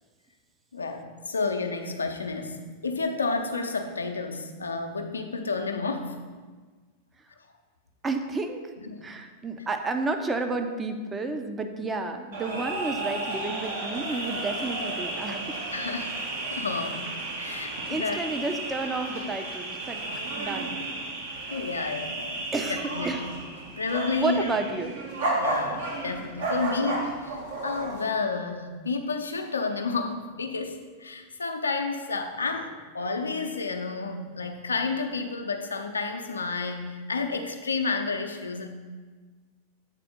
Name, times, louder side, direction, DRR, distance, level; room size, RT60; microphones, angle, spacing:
voice 1, 0.7-6.2 8.8-9.1 15.7-16.1 16.5-17.0 17.4-18.2 21.5-22.5 22.9-23.3 23.8-24.5 25.3-38.7, left 4 dB, 75° left, 5 dB, 0.7 m, -31 dB
voice 2, 8.0-8.6 9.0-15.6 17.4-20.0 20.4-20.7 21.4-21.5 22.5-23.2 24.2-24.9, right 3 dB, 15° right, 6 dB, 0.7 m, -31 dB
sound 1, 12.3-28.0, right 2 dB, 60° right, 1.5 m, -33 dB
8.1 x 4.2 x 5.5 m, 1.4 s
figure-of-eight pair, 90°, 0 cm